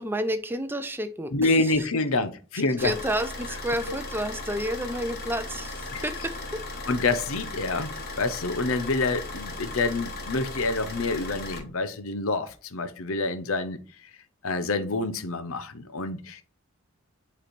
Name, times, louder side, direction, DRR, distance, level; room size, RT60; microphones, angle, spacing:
voice 1, 0.0-1.9 2.8-6.6, equal, 10° right, 0.5 m, -30 dB
voice 2, 1.3-2.9 3.9-4.0 5.9-6.0 6.9-13.8 14.4-16.4, left 3 dB, 70° left, 0.7 m, -27 dB
Car / Idling, 2.8-11.6, left 2 dB, 45° left, 1.4 m, -37 dB
7.8 x 3.3 x 4.3 m
head